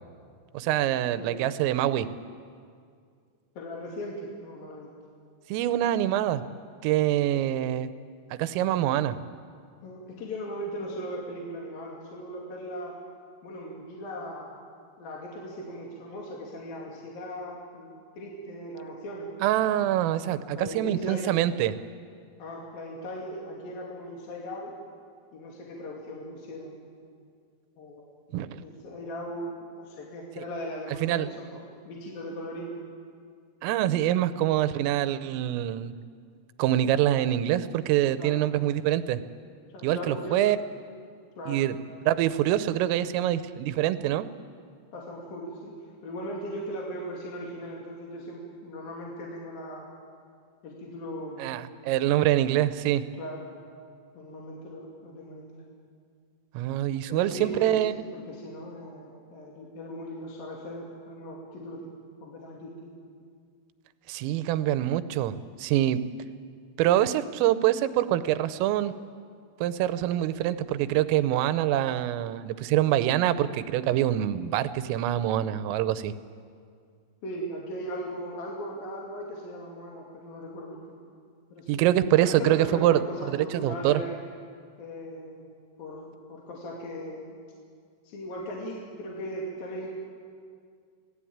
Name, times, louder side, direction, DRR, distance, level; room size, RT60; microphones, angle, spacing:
voice 1, 0.5-2.1 5.5-6.4 6.8-7.9 8.3-9.2 19.4-21.7 28.3-28.6 31.0-31.3 33.6-35.9 36.6-39.2 39.8-40.6 41.5-41.8 42.1-44.3 51.4-53.0 56.5-58.0 64.1-66.0 66.8-68.9 69.6-76.1 81.7-83.0 83.3-84.0, right 12 dB, 85° right, 13 dB, 3.5 m, -25 dB
voice 2, 3.6-4.9 9.8-13.0 13.4-14.6 15.0-19.3 20.5-21.3 22.4-24.7 25.3-26.8 27.8-28.0 28.6-32.8 38.2-38.4 39.7-40.4 41.4-41.6 44.9-49.9 50.6-51.5 53.2-53.5 54.1-55.6 57.1-57.8 58.1-61.9 62.2-62.9 77.2-80.8 81.5-81.9 82.2-84.2 84.8-85.5 85.8-87.4 88.0-89.9, equal, 50° left, -2 dB, 3.8 m, -38 dB
28.0 x 18.5 x 8.8 m, 2.2 s
omnidirectional pair, 5.8 m